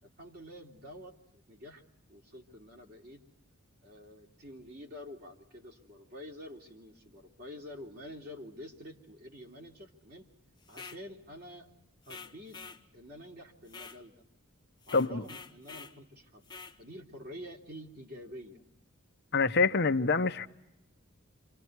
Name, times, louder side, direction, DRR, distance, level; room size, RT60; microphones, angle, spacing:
voice 1, 0.0-1.8 2.1-3.2 3.8-10.3 10.7-11.7 12.0-12.6 12.9-14.2 14.9-18.6, left 1 dB, 50° right, 3.4 m, -48 dB
sound 1, 10.7-11.0 12.1-12.8 13.7-14.0 14.8-16.0 16.5-16.8, left 5 dB, 20° left, 1.1 m, -47 dB
voice 2, 14.9-15.2 19.3-20.5, left 4 dB, 55° left, 0.9 m, -26 dB
28.0 x 27.0 x 4.7 m
head